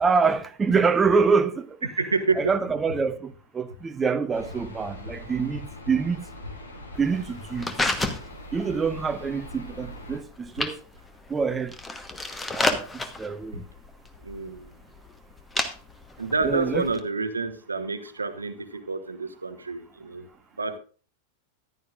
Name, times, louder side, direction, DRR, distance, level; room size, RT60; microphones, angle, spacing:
voice 1, 0.0-1.9 2.4-6.2 7.0-7.7 8.5-10.8 11.3-11.8 12.5-13.6 16.4-16.9, right 5 dB, 15° right, 0.7 m, -25 dB
voice 2, 2.0-2.5 14.2-14.7 16.2-20.3 20.6-20.8, right 4 dB, 80° right, 1.1 m, -28 dB
sound 1, 4.3-10.2, equal, 75° left, 2.1 m, -42 dB
sound 2, 6.9-17.0, left 2 dB, 10° left, 1.2 m, -32 dB
14.5 x 11.0 x 2.5 m
figure-of-eight pair, 90°, 0 cm